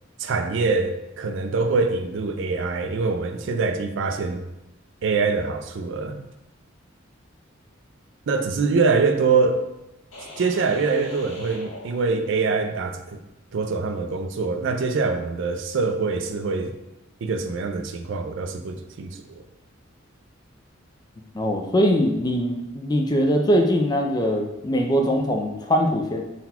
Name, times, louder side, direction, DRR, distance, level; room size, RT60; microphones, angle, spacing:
voice 1, 0.2-4.4 5.0-6.2 8.3-9.6 10.4-13.0 13.5-16.7 17.2-19.4, right 4 dB, 60° right, 6 dB, 0.4 m, -24 dB
sound 1, 10.1-12.7, left 1 dB, 90° left, 1.3 m, -41 dB
voice 2, 21.3-26.2, equal, 20° left, 3 dB, 0.3 m, -22 dB
3.9 x 2.3 x 4.2 m, 0.93 s
head